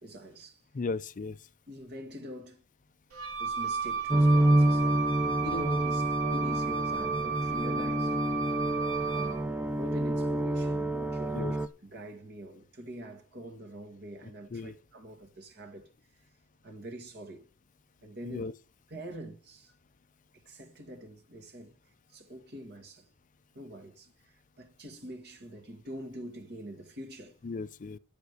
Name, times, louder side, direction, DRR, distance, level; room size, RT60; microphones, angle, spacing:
voice 1, 0.0-0.6 1.7-2.6 3.4-5.1 5.4-8.2 9.1-11.6 11.8-15.9 16.6-17.5 18.0-18.4 18.9-19.7 20.3-21.7 22.1-23.1 23.5-27.4, equal, 50° right, 2.0 m, -44 dB
voice 2, 0.7-1.5 11.3-11.5 14.5-14.8 18.2-18.5 27.4-28.0, left 3 dB, 35° left, 0.4 m, -36 dB
Wind instrument woodwind instrument, 3.1-9.4, right 5 dB, 70° right, 2.4 m, -33 dB
sound 1, 4.1-11.7, right 1 dB, 5° right, 0.7 m, -28 dB
10.5 x 5.2 x 8.2 m
head